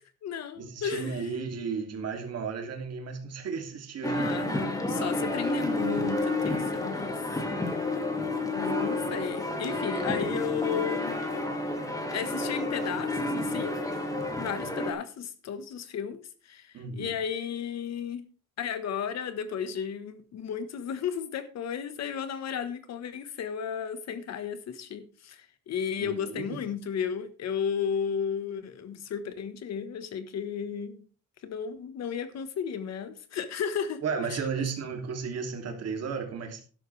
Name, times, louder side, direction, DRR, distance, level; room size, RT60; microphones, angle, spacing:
voice 1, 0.0-1.4 4.0-7.2 8.4-11.2 12.1-13.8 14.4-18.3 18.6-31.0 31.4-34.0 34.3-34.7, left 7 dB, 55° left, 1.4 m, -34 dB
voice 2, 0.6-4.6 16.7-17.2 26.0-26.6 34.0-36.6, right 5 dB, 50° right, 2.9 m, -34 dB
sound 1, 4.0-14.9, left 2 dB, 10° left, 2.1 m, -30 dB
12.5 x 11.0 x 3.4 m
cardioid pair, 160°, 32 cm